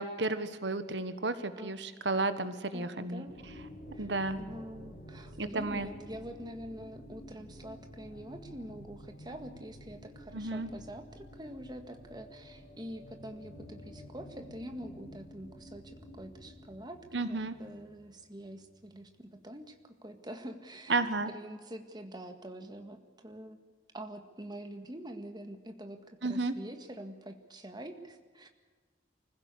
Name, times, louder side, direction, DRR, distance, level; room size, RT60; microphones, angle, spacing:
voice 1, 0.0-3.2 4.0-4.4 5.4-5.9 10.3-10.7 17.1-17.5 20.9-21.3 26.2-26.5, right 3 dB, 85° right, 11 dB, 1.3 m, -32 dB
voice 2, 1.6-2.1 2.7-3.3 3.9-4.1 4.4-19.8 20.0-21.0 21.3-23.6 23.9-28.5, right 1 dB, 25° right, 6 dB, 1.8 m, -45 dB
sound 1, 3.3-19.7, equal, 55° left, 5.5 m, -51 dB
25.0 x 15.5 x 8.4 m, 1.5 s
head